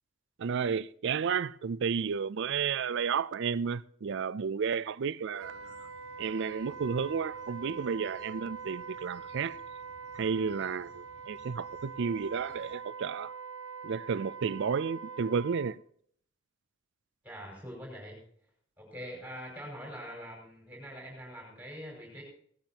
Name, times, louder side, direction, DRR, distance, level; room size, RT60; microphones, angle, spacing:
voice 1, 0.4-5.9 6.2-9.6 10.2-13.3 13.8-15.8, right 6 dB, 60° right, 0.4 m, -32 dB
Wind instrument woodwind instrument, 5.3-15.8, right 5 dB, 85° right, 1.1 m, -44 dB
sound 1, 5.4-12.7, left 1 dB, 55° left, 2.6 m, -61 dB
voice 2, 17.2-18.2 18.8-22.2, equal, 10° right, 5.5 m, -44 dB
17.5 x 13.0 x 2.9 m
head